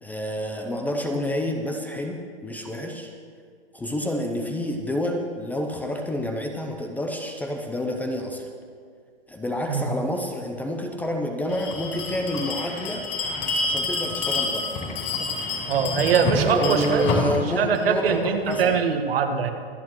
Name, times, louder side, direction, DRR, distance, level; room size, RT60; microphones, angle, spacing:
voice 1, 0.0-3.1 3.7-8.5 9.3-13.1 13.6-14.7 16.4-18.8, left 1 dB, 5° left, 3 dB, 0.6 m, -29 dB
Bell, 11.5-18.7, left 3 dB, 35° left, 3.6 m, -28 dB
voice 2, 15.7-17.0 17.5-19.5, right 7 dB, 70° right, 6 dB, 1.4 m, -22 dB
24.5 x 8.6 x 3.1 m, 2.1 s
hypercardioid pair, 135°, 30 cm